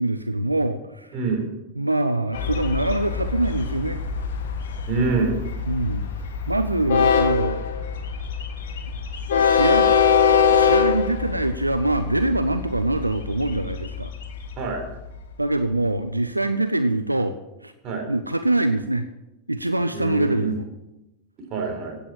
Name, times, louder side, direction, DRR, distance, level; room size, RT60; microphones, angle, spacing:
voice 1, 0.0-1.2 1.8-4.0 5.7-6.1 6.5-7.6 9.4-9.9 10.5-14.1 15.4-17.4 17.6-17.7 18.1-19.1 19.5-20.6, right 2 dB, 85° right, 10 dB, 0.6 m, -24 dB
voice 2, 1.1-1.5 4.9-5.4 14.6-14.9 17.8-18.1 19.9-20.5 21.5-22.0, right 4 dB, 35° right, 2 dB, 4.3 m, -25 dB
Train, 2.3-15.3, left 6 dB, 60° left, 1.5 m, -23 dB
16.0 x 8.7 x 7.3 m, 0.96 s
figure-of-eight pair, 90°, 0 cm